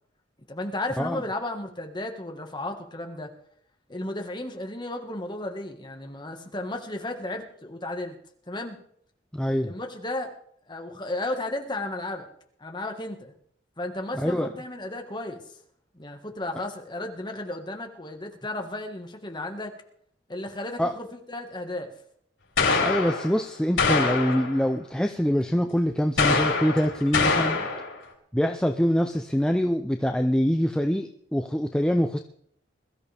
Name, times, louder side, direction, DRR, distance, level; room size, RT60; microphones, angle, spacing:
voice 1, 0.5-3.3 3.9-8.1 8.5-8.8 9.6-10.3 10.7-12.3 12.6-13.3 13.8-15.4 15.9-19.7 20.3-21.9, left 2 dB, 25° left, 3 dB, 1.6 m, -34 dB
voice 2, 9.3-9.7 14.1-14.5 20.8-21.0 22.8-27.7 28.3-32.2, equal, 5° left, 5 dB, 0.5 m, -24 dB
sound 1, 22.6-23.4 23.8-24.6 26.2-27.9, left 4 dB, 90° left, 4.4 m, -24 dB
21.5 x 13.5 x 3.4 m, 0.67 s
head